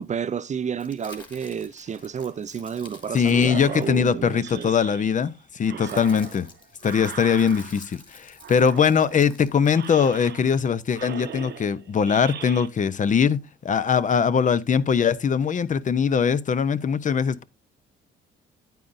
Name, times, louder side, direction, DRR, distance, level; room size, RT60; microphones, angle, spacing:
voice 1, 0.0-4.7 5.9-6.1, right 7 dB, 35° right, 0.4 m, -31 dB
sound 1, 0.8-4.5 5.4-10.7, left 2 dB, 25° left, 2.3 m, -50 dB
voice 2, 3.1-6.5 6.8-17.4, left 7 dB, 40° left, 0.6 m, -21 dB
sound 2, 3.2-5.3 5.6-8.0 8.4-9.3 9.7-10.7 10.9-12.7, right 9 dB, 60° right, 0.8 m, -40 dB
9.1 x 8.7 x 2.6 m
cardioid pair, 90°, 20 cm